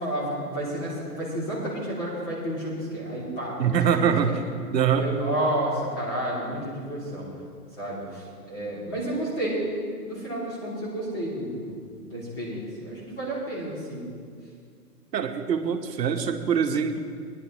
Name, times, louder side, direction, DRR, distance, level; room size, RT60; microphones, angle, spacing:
voice 1, 0.0-4.4 5.0-7.3 7.7-9.6 10.0-14.1, right 1 dB, 20° left, -7 dB, 2.6 m, -31 dB
voice 2, 3.6-4.4 4.7-5.1 15.1-17.0, right 7 dB, 90° right, 7 dB, 1.1 m, -23 dB
17.0 x 10.5 x 3.0 m, 2.1 s
hypercardioid pair, 165°, 48 cm